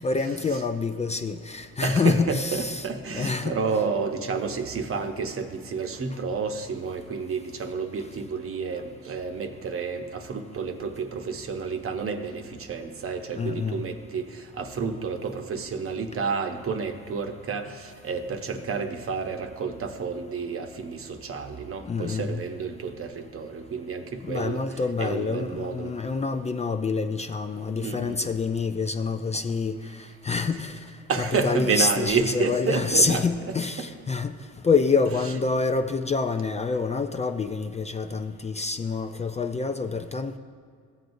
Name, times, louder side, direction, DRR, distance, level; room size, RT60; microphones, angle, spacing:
voice 1, 0.0-2.9 3.1-3.6 13.4-13.9 21.9-22.4 24.2-30.8 31.2-34.4 34.6-40.4, left 4 dB, 25° left, 7 dB, 0.3 m, -27 dB
voice 2, 1.8-24.6 25.0-25.9 27.8-28.3 31.1-33.2, right 5 dB, 45° right, 5 dB, 0.8 m, -30 dB
14.5 x 7.8 x 2.6 m, 2.1 s
cardioid pair, 90°, 30 cm